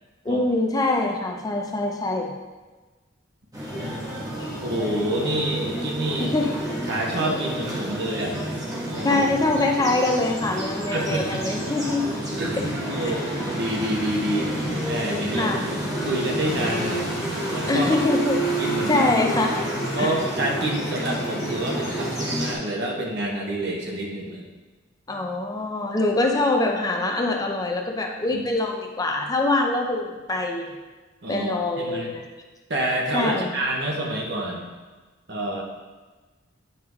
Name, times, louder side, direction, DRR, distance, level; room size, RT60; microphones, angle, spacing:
voice 1, 0.3-2.3 4.4-4.6 6.2-6.5 9.0-12.1 13.0-13.1 15.4-15.7 17.7-18.5 18.8-19.6 20.0-20.1 25.1-30.8 31.3-32.2 33.1-33.5, left 2 dB, 20° left, 2 dB, 0.6 m, -24 dB
sound 1, 3.5-22.5, right 1 dB, 20° right, 1.5 m, -29 dB
voice 2, 3.7-4.3 4.6-6.3 6.9-8.4 8.9-9.2 10.9-11.9 12.4-14.5 14.8-17.1 17.5-18.0 18.6-19.1 19.9-24.4 28.3-28.4 31.2-31.5 31.8-32.1 32.7-34.7 35.3-35.6, right 1 dB, 65° right, -1 dB, 1.3 m, -28 dB
Bowed string instrument, 16.5-22.3, equal, 50° left, 1.0 m, -35 dB
8.7 x 4.7 x 3.6 m, 1.3 s
head